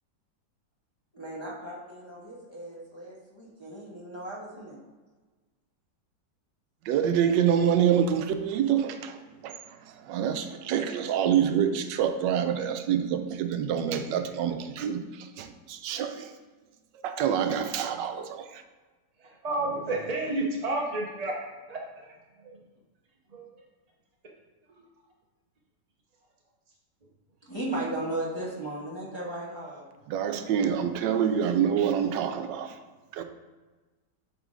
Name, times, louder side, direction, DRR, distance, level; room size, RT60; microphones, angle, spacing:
voice 1, 1.1-4.8 27.5-29.9, right 1 dB, 15° left, -6 dB, 1.4 m, -36 dB
voice 2, 6.8-16.3 17.0-18.4 30.1-32.8 33.1-33.2, right 8 dB, 90° right, 7 dB, 1.3 m, -26 dB
voice 3, 19.2-21.3 21.7-22.1 23.3-23.5, right 2 dB, 45° right, -1 dB, 0.5 m, -30 dB
8.1 x 3.9 x 3.8 m, 1.3 s
omnidirectional pair, 1.9 m